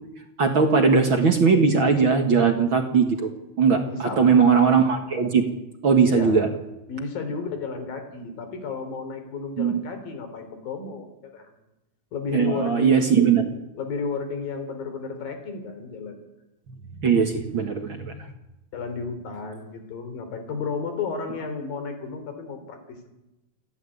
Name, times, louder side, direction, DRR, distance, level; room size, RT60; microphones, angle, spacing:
voice 1, 0.4-3.3 3.6-5.4 5.8-6.5 9.6-9.8 12.3-13.5 17.0-18.2, right 5 dB, 45° right, 5 dB, 1.9 m, -19 dB
voice 2, 3.8-4.4 6.1-6.5 6.9-11.1 11.3-11.5 12.1-13.1 13.8-16.1 18.7-23.1, left 4 dB, 90° left, 7 dB, 5.2 m, -32 dB
29.0 x 11.5 x 9.9 m, 0.94 s
omnidirectional pair, 4.0 m